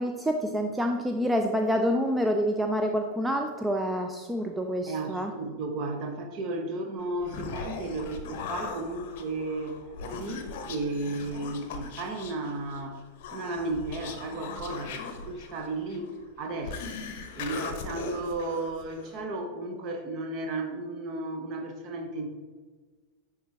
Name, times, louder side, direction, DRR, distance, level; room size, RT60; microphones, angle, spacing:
voice 1, 0.0-5.3, equal, 5° right, 4 dB, 0.4 m, -27 dB
voice 2, 4.9-9.8 10.1-13.0 13.3-17.0 17.3-22.3, right 2 dB, 40° right, 5 dB, 1.0 m, -34 dB
Human voice, 7.0-19.2, left 5 dB, 50° left, 0.7 m, -40 dB
10.0 x 3.6 x 3.3 m, 1.4 s
figure-of-eight pair, 90°, 0 cm